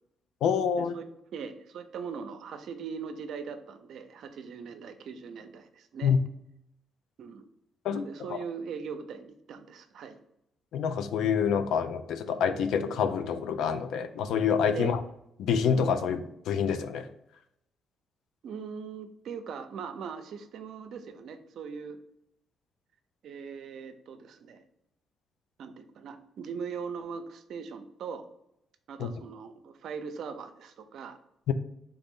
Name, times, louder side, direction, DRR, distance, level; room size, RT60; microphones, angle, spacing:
voice 1, 0.4-0.9 6.0-6.2 7.8-8.0 8.3-8.4 10.7-15.0 15.4-17.1 29.0-29.1 31.5-31.6, left 7 dB, 80° left, 11 dB, 0.4 m, -27 dB
voice 2, 1.3-6.1 7.2-7.5 7.9-10.2 14.7-15.0 18.4-22.0 23.2-24.6 25.6-28.2 28.9-31.2, right 6 dB, 70° right, 9 dB, 0.5 m, -40 dB
3.9 x 3.3 x 3.6 m, 0.81 s
cardioid pair, 90°, 0 cm